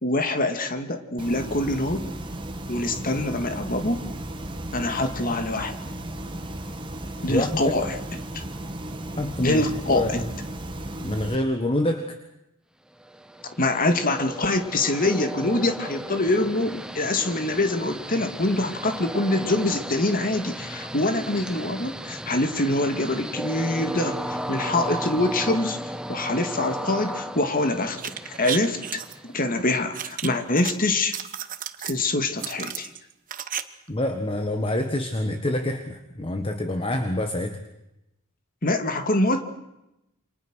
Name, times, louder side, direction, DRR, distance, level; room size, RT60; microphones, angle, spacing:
voice 1, 0.0-2.0 2.7-4.0 4.7-5.7 7.2-8.0 8.3-8.4 9.4-10.2 13.6-25.8 26.1-28.0 28.2-31.2 31.8-32.9 38.6-39.4, left 2 dB, 40° left, 7 dB, 2.3 m, -25 dB
sound 1, 1.2-11.3, right 1 dB, 20° right, 2.0 m, -35 dB
voice 2, 7.3-7.7 9.2-10.3 11.0-12.2 33.9-37.6, left 1 dB, 25° left, 6 dB, 1.5 m, -27 dB
Train, 13.0-29.8, right 1 dB, 5° right, 0.9 m, -35 dB
sound 2, 27.9-29.1 29.9-30.7 31.0-32.0 32.4-33.6 33.9-34.0, right 9 dB, 40° right, 1.2 m, -33 dB
28.5 x 26.0 x 6.4 m, 0.90 s
head